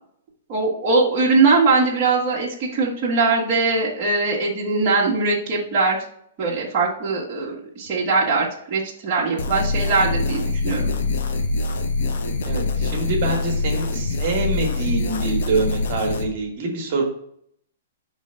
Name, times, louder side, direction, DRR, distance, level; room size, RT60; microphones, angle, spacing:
voice 1, 0.5-6.0 6.4-10.9, right 3 dB, 25° right, -6 dB, 1.3 m, -21 dB
sound 1, 9.4-16.3, left 3 dB, 65° left, 0.8 m, -24 dB
voice 2, 12.4-17.0, right 3 dB, 40° right, 1 dB, 1.5 m, -25 dB
5.4 x 3.2 x 5.5 m, 0.68 s
hypercardioid pair, 160°, 0 cm